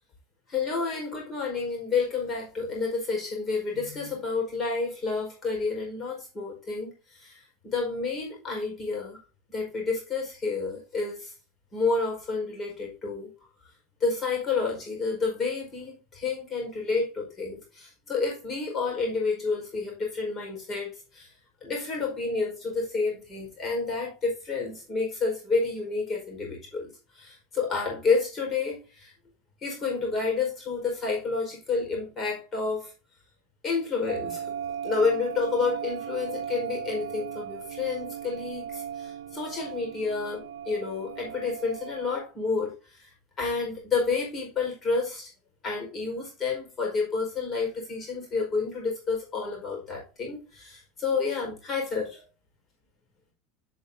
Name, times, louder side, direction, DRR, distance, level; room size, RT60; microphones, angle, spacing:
voice 1, 0.5-9.2 9.5-11.3 11.7-13.3 14.0-21.3 21.6-26.9 27.1-29.1 29.6-32.9 33.6-34.5 34.8-43.1 43.4-45.3 45.6-52.2, left 4 dB, 35° left, 4.7 m, -30 dB
Bell Caught in Time, 34.1-42.2, right 8 dB, 80° right, 0.6 m, -37 dB
11.0 x 5.8 x 2.7 m
hypercardioid pair, 85°, 0 cm